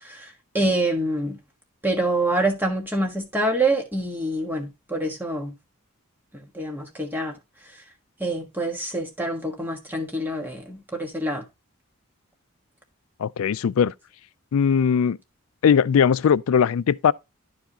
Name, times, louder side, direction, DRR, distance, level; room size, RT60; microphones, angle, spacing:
voice 1, 0.0-1.4 1.8-5.5 6.5-7.3 8.2-11.4, right 1 dB, 10° right, 1.4 m, -26 dB
voice 2, 13.2-13.9 14.5-15.2 15.6-17.1, left 7 dB, 80° left, 0.4 m, -19 dB
11.5 x 4.7 x 2.8 m
head